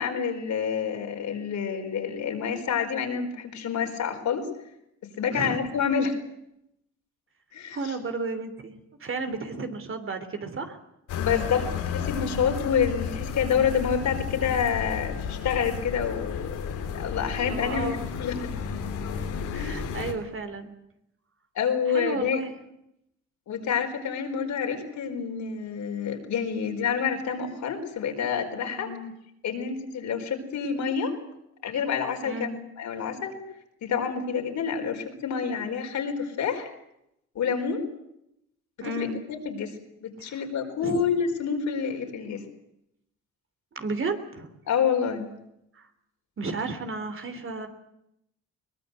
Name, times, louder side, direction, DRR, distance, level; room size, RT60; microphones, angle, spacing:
voice 1, 0.0-4.5 5.0-6.2 7.5-7.9 11.2-18.5 19.5-19.8 21.5-22.4 23.5-28.9 29.4-31.1 31.6-32.5 32.8-33.4 33.8-36.7 37.3-37.8 38.8-39.8 40.0-42.4 44.7-45.3, left 7 dB, 70° left, 3 dB, 4.6 m, -28 dB
voice 2, 7.7-8.7 9.0-10.8 17.5-18.0 19.1-20.7 21.9-22.5 28.7-29.1 32.2-32.6 38.8-39.2 40.2-40.4 40.8-41.0 43.7-44.5 45.7-45.9 46.4-47.7, right 3 dB, 45° right, 8 dB, 3.2 m, -33 dB
sound 1, 11.1-20.1, left 7 dB, 90° left, 3.4 m, -32 dB
22.5 x 20.0 x 8.1 m, 0.80 s
cardioid pair, 90°, 30 cm